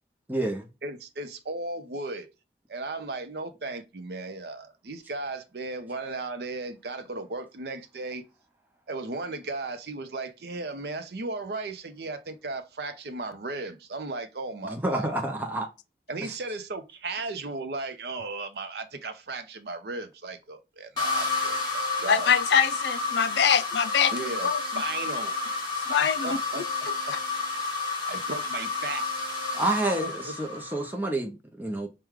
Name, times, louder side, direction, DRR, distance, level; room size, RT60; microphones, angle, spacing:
voice 1, 0.3-0.7 14.6-15.7 16.2-16.3 29.5-31.9, right 2 dB, 10° right, 0.6 m, -29 dB
voice 2, 0.8-2.3 2.7-8.2 8.9-15.3 16.1-22.3 24.1-24.5 24.7-25.3 26.2-26.6 28.1-29.1 30.0-30.3, right 3 dB, 65° right, 0.6 m, -36 dB
sound 1, 21.0-30.9, left 3 dB, 25° left, 1.5 m, -30 dB
voice 3, 22.1-24.1 24.4-24.6 25.9-26.6, left 7 dB, 80° left, 0.4 m, -23 dB
4.7 x 2.2 x 3.5 m
head